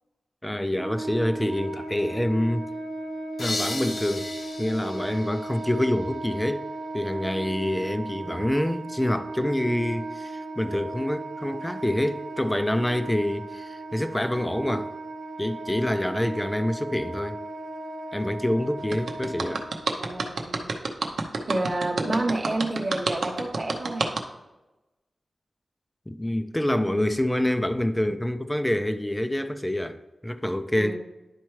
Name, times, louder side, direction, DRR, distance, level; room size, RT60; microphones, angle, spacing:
voice 1, 0.4-2.7 3.4-4.3 4.6-6.7 6.9-14.9 15.4-17.4 18.1-19.6 26.1-30.0 30.2-31.0, left 1 dB, 10° left, 0.4 m, -26 dB
Wind instrument woodwind instrument, 0.7-20.2, right 2 dB, 55° right, 0.8 m, -36 dB
sound 1, 3.4-6.2, left 2 dB, 75° left, 1.1 m, -35 dB
sound 2, 18.9-24.2, right 3 dB, 85° right, 0.7 m, -28 dB
voice 2, 20.0-20.7 21.5-24.1 30.7-31.0, right 2 dB, 30° right, 1.0 m, -29 dB
10.5 x 4.4 x 3.1 m
wide cardioid pair, 140°, 0 cm